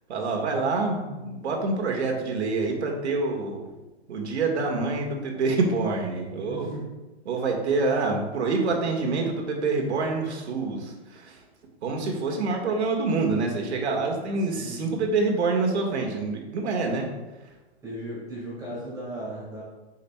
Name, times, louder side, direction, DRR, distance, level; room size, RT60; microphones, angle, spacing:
voice 1, 0.1-3.7 4.1-6.7 7.3-11.4 11.8-17.0, right 3 dB, 80° right, 1 dB, 1.7 m, -26 dB
voice 2, 6.4-6.9 7.8-7.9 14.4-14.9 17.8-19.6, right 1 dB, 10° right, -7 dB, 1.7 m, -37 dB
8.7 x 5.7 x 2.2 m, 1.1 s
hypercardioid pair, 155°, 33 cm